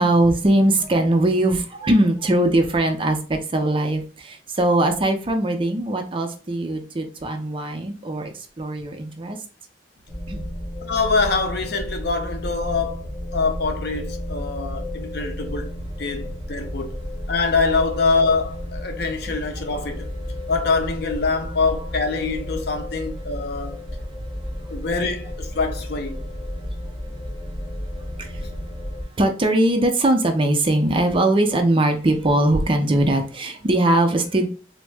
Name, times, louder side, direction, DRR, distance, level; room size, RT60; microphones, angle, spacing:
voice 1, 0.0-8.3 8.6-9.4 10.3-10.5 28.2-28.4 29.2-34.5, right 1 dB, 30° right, 0.5 m, -20 dB
sound 1, 10.1-29.0, left 1 dB, 30° left, 1.4 m, -32 dB
voice 2, 10.9-13.1 13.3-15.7 16.0-16.9 17.3-20.1 20.5-23.7 24.7-26.2 28.4-28.5, left 4 dB, 65° left, 0.6 m, -24 dB
3.4 x 2.0 x 3.3 m
head